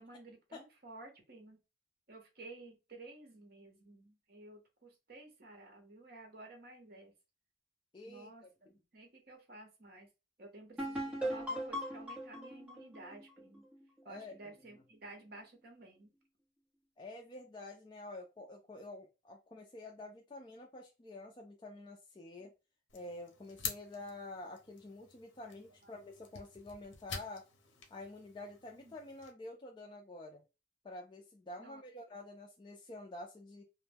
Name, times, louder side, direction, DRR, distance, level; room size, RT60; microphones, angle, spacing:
voice 1, 0.0-1.6 2.1-7.1 8.0-10.1 10.4-13.6 14.0-16.1 22.4-22.5 25.5-25.6 25.8-25.9 28.7-29.0 31.6-31.8, right 2 dB, 55° right, 3 dB, 0.8 m, -53 dB
voice 2, 7.9-8.5 14.0-14.3 17.0-22.5 22.9-27.5 27.9-30.4 30.8-33.6, left 2 dB, 25° left, 0 dB, 0.4 m, -48 dB
sound 1, 10.8-14.4, equal, 5° right, 0.9 m, -40 dB
sound 2, 22.9-29.3, left 6 dB, 75° left, 0.7 m, -48 dB
2.1 x 2.1 x 3.3 m, 0.27 s
head